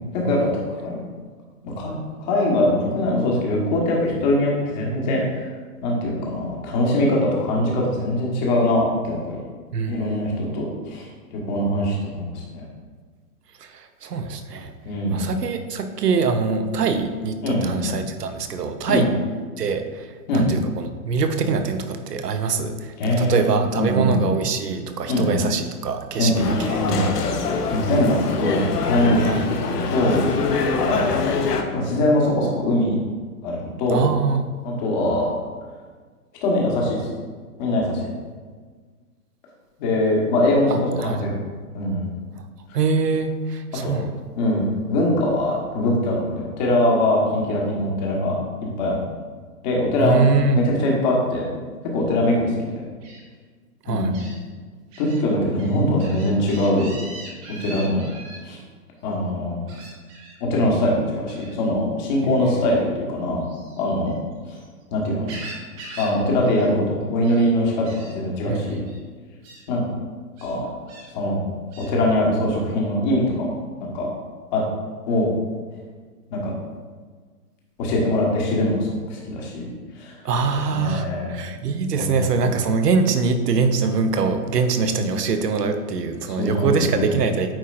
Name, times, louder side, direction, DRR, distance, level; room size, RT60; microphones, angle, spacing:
voice 1, 0.1-1.0 1.6-1.9 2.2-5.5 5.8-9.4 9.9-12.7 14.8-15.3 17.4-17.9 18.9-19.1 20.3-20.5 23.0-23.5 23.7-24.3 25.1-25.5 26.2-27.1 27.7-30.2 30.7-31.4 31.7-33.0 33.4-34.0 34.6-35.3 36.4-37.1 37.6-38.0 39.8-41.3 41.7-42.1 43.8-44.0 44.4-48.4 48.8-49.0 49.6-50.2 50.5-51.5 51.9-52.7 53.9-54.2 55.0-56.9 57.6-58.0 58.4-58.6 59.0-59.6 60.4-63.4 63.8-64.1 64.5-64.6 64.9-65.3 66.0-68.8 69.7-69.8 70.4-70.7 71.1-71.4 71.8-74.1 74.5-74.6 75.1-75.3 76.3-76.5 77.8-79.7 79.9-80.2 80.7-81.4 81.9-82.2 86.3-87.1, left 1 dB, 30° left, -2 dB, 1.3 m, -22 dB
voice 2, 9.7-10.2 13.6-14.7 15.1-19.1 19.6-26.3 26.6-27.1 29.3-29.5 33.9-34.5 41.0-41.2 42.7-44.0 50.0-50.6 53.8-54.1 62.4-62.6 68.5-68.7 80.2-87.5, right 4 dB, 90° right, 7 dB, 0.9 m, -23 dB
sound 1, 26.4-31.6, left 4 dB, 80° left, 0.9 m, -24 dB
Gull seagull, 53.0-53.2 54.1-54.4 54.9-55.2 55.6-58.4 59.7-60.4 61.3-61.5 63.4-64.7 65.0-66.2 66.4-66.7 67.0-67.5 67.8-68.1 68.8-69.0 69.4-69.6 70.4-71.1 71.7-71.9, right 2 dB, 25° right, 1.0 m, -41 dB
8.9 x 4.3 x 2.5 m, 1.5 s
hypercardioid pair, 150°, 47 cm